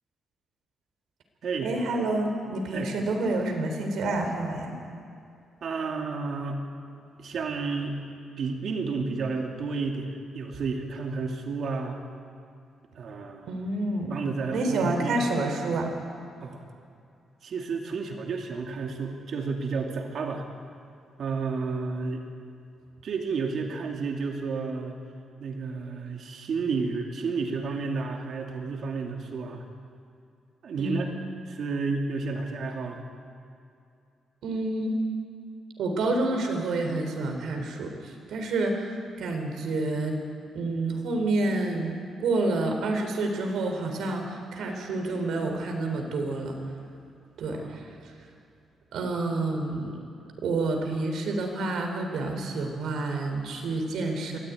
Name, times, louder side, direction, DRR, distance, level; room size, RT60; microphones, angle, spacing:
voice 1, 1.6-4.7 13.5-14.2 14.5-15.9 30.8-31.2 34.4-34.9 35.8-40.2 40.5-46.6 47.4-48.2 48.9-50.0 50.4-54.4, right 2 dB, 75° right, 3 dB, 3.9 m, -29 dB
voice 2, 5.6-6.6 7.2-8.0 8.4-12.0 13.0-13.5 14.1-15.2 16.4-16.6 17.4-20.4 21.2-22.2 23.0-25.0 25.4-29.6 30.6-31.1 31.5-33.0 47.5-47.8, right 4 dB, 55° right, 2 dB, 2.5 m, -31 dB
22.5 x 14.5 x 9.4 m, 2.5 s
cardioid pair, 135°, 0 cm